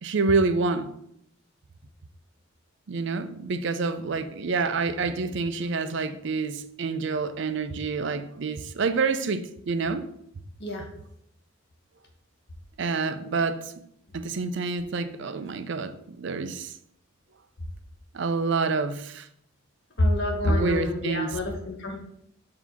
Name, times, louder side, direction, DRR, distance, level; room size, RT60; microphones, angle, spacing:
voice 1, 0.0-0.9 2.9-10.1 12.8-13.7 14.1-16.7 18.1-19.3 20.4-21.4, right 4 dB, 60° right, 0.5 m, -27 dB
voice 2, 20.0-22.0, left 1 dB, 55° left, 1.3 m, -26 dB
7.1 x 2.8 x 5.7 m
head